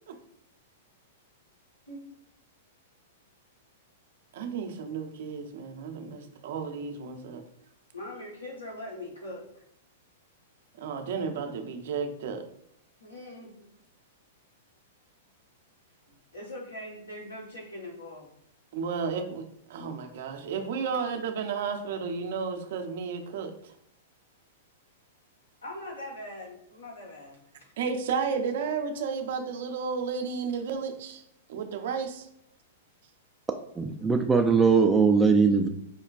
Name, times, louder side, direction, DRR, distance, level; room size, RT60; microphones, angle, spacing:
voice 1, 4.3-7.4 10.8-12.4 18.7-19.4 19.7-23.7 27.8-31.2 31.5-32.3, right 5 dB, 65° right, 5 dB, 0.6 m, -32 dB
voice 2, 7.9-9.5 13.0-13.7 16.1-18.3 25.6-27.4, left 1 dB, 90° left, -3 dB, 1.3 m, -41 dB
voice 3, 33.8-35.7, right 5 dB, 10° right, 3 dB, 0.3 m, -21 dB
5.2 x 2.2 x 2.5 m, 0.74 s
hypercardioid pair, 110°, 0 cm